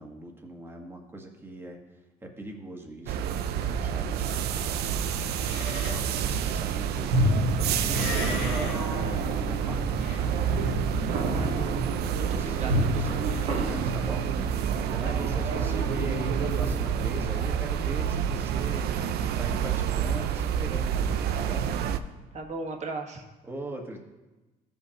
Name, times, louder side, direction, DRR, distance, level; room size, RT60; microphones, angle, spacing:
voice 1, 0.0-1.8 2.2-5.0 5.5-10.4 11.0-11.6 12.2-14.3 14.6-19.0 19.4-22.0 23.4-24.0, right 1 dB, 15° right, 1 dB, 1.3 m, -41 dB
sound 1, 3.1-22.0, right 9 dB, 70° right, 0.5 m, -29 dB
Livestock farm animals working animals, 3.6-10.2, left 2 dB, 85° left, 2.1 m, -39 dB
sound 2, 7.1-17.2, right 1 dB, 90° right, 1.7 m, -30 dB
voice 2, 11.4-13.8 15.0-15.4 22.3-23.2, right 3 dB, 40° right, 2 dB, 1.3 m, -38 dB
15.0 x 5.3 x 2.9 m, 1.1 s
cardioid pair, 110°, 17 cm